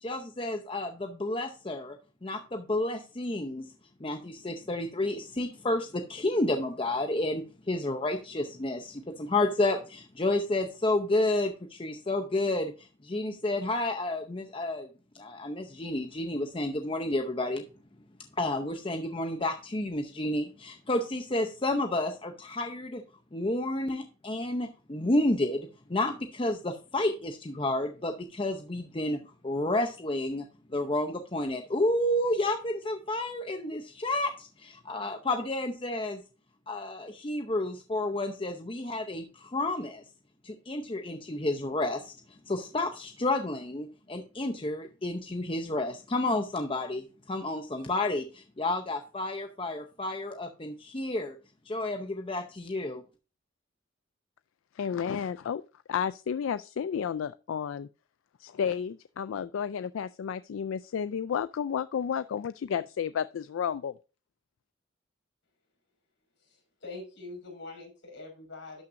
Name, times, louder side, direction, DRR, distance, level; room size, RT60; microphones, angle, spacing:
voice 1, 0.0-2.0 2.2-3.7 4.0-12.7 13.0-14.9 15.1-17.7 18.4-23.0 23.3-36.2 36.7-40.0 40.4-42.1 42.5-51.4 51.7-53.0, left 2 dB, 25° left, 0.7 m, -30 dB
voice 2, 54.8-55.6 55.9-57.9 58.4-64.0, left 7 dB, 85° left, 0.3 m, -32 dB
voice 3, 66.4-68.8, left 3 dB, 65° left, 5.3 m, -44 dB
12.0 x 5.8 x 2.6 m
head